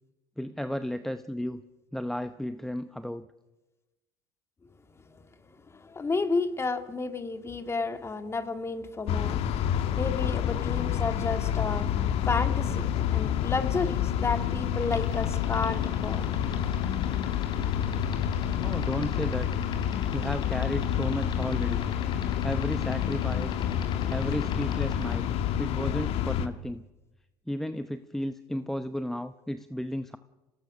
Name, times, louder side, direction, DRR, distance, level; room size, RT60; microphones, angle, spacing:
voice 1, 0.4-1.6 1.9-3.3 18.6-19.5 20.1-21.9 22.4-23.6 24.1-25.3 25.6-26.8 27.5-30.2, equal, 5° left, 11 dB, 0.8 m, -33 dB
voice 2, 5.7-9.4 9.9-11.9 12.2-16.3, left 4 dB, 25° left, 8 dB, 2.0 m, -31 dB
sound 1, 9.1-26.5, left 9 dB, 60° left, 1.5 m, -28 dB
sound 2, 14.8-25.1, left 8 dB, 40° left, 4.2 m, -41 dB
26.0 x 18.0 x 6.3 m, 1.1 s
hypercardioid pair, 80°, 11 cm